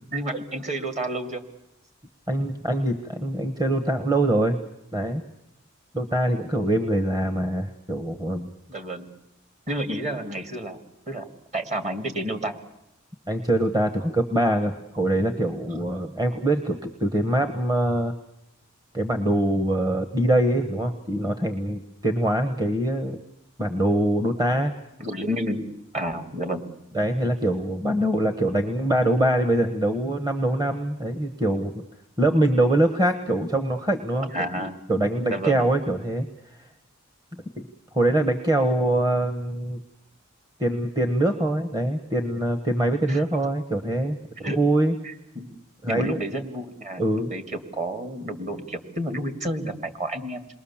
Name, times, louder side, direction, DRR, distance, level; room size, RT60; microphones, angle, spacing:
voice 1, 0.1-1.4 8.7-9.1 9.7-10.8 11.1-11.3 11.5-12.6 15.7-15.8 25.0-25.7 25.9-26.6 26.9-27.0 34.3-34.8 35.3-35.7 43.1-43.2 44.4-44.6 45.0-45.5 45.8-50.5, right 1 dB, 35° right, 7 dB, 2.3 m, -30 dB
voice 2, 2.3-4.6 4.9-5.2 5.9-8.5 13.3-18.1 18.9-23.2 23.6-24.7 26.9-31.7 32.2-36.3 37.6-37.7 37.9-39.8 40.6-44.9 45.8-46.2 47.0-47.3, right 1 dB, 20° right, 8 dB, 1.1 m, -23 dB
28.0 x 21.5 x 7.3 m, 0.84 s
head